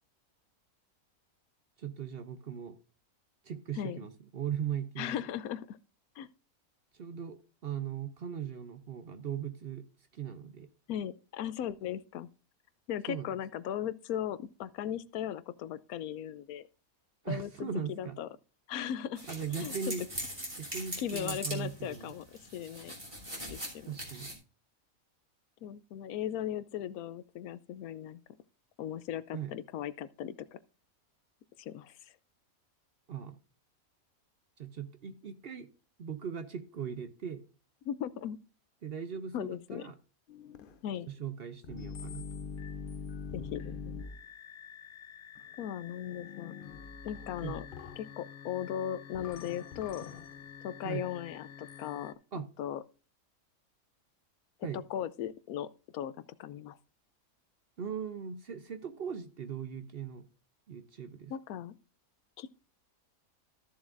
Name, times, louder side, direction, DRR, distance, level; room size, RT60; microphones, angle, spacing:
voice 1, 1.8-2.8 3.4-5.2 6.9-9.9 10.1-10.7 13.1-13.3 17.2-18.2 19.3-20.1 20.6-22.1 23.9-24.3 29.3-29.5 33.1-33.4 34.6-35.7 36.0-37.4 38.8-40.0 41.1-42.2 47.4-47.6 50.8-51.1 52.3-52.5 54.6-54.8 57.8-60.3 60.7-61.3, right 7 dB, 55° right, 0.7 m, -39 dB
voice 2, 5.0-5.8 6.2-6.3 10.9-12.3 12.9-16.7 17.2-18.3 18.7-19.2 19.6-19.7 21.0-22.3 22.5-23.0 23.5-24.0 25.6-28.2 28.8-30.6 31.6-32.1 37.8-38.4 39.3-39.9 40.8-41.1 43.3-44.0 45.6-46.5 47.0-47.7 48.0-50.1 50.6-52.1 52.6-52.8 54.7-56.1 56.4-56.8 61.3-61.8 62.4-62.5, left 10 dB, 85° left, 1.1 m, -37 dB
sound 1, 19.2-24.3, equal, 20° right, 3.2 m, -41 dB
sound 2, 40.3-52.1, left 6 dB, 55° left, 0.6 m, -45 dB
14.0 x 7.1 x 2.5 m
omnidirectional pair, 1.5 m